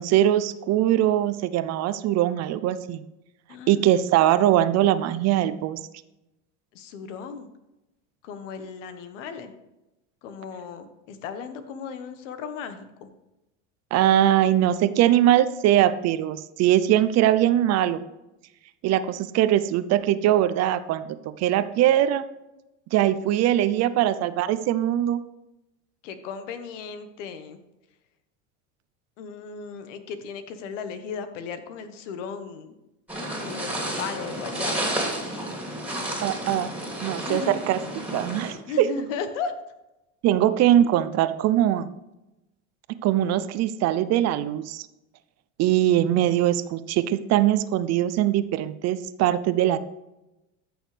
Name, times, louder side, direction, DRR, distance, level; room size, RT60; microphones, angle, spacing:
voice 1, 0.0-3.0 3.7-5.8 13.9-18.0 18.8-21.1 21.4-22.2 22.9-25.2 36.2-36.7 37.0-37.8 38.1-38.9 40.2-41.9 43.0-44.9 45.6-49.8, right 12 dB, 45° right, 14 dB, 0.6 m, -21 dB
voice 2, 3.5-3.8 6.7-7.5 8.2-9.5 10.2-13.1 26.0-27.6 29.2-32.7 33.4-35.5 37.2-37.6 38.6-39.5 40.7-41.0, left 6 dB, 80° left, 10 dB, 1.3 m, -36 dB
sound 1, 33.1-38.5, right 1 dB, 5° right, 2.9 m, -31 dB
14.0 x 6.3 x 3.3 m, 0.95 s
supercardioid pair, 115°, 37 cm